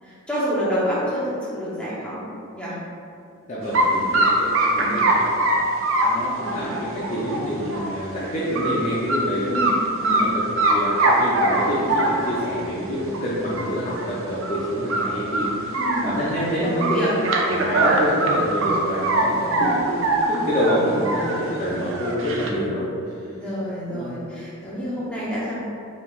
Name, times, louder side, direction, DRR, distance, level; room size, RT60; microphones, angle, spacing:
voice 1, 0.0-2.3 2.5-2.8 3.8-4.2 4.7-5.0 9.4-10.3 15.7-16.0 16.6-17.1 17.7-18.0 19.2-19.6 23.3-25.6, equal, 5° left, -10 dB, 0.9 m, -28 dB
voice 2, 3.5-5.4 6.0-9.5 10.1-15.8 16.0-17.2 17.5-22.9 23.2-23.3 23.9-24.1, equal, 35° left, -9 dB, 0.5 m, -27 dB
sound 1, 3.7-3.9 4.1-7.9 8.3-8.7 9.1-9.2 9.5-10.2 10.6-12.5 13.1-13.2 13.6-13.7 14.0-14.1 14.4-14.6 14.9-16.4 16.8-19.3 19.5-21.4 21.8-22.5, right 2 dB, 70° right, 0.5 m, -22 dB
4.8 x 3.4 x 2.5 m, 2.5 s
head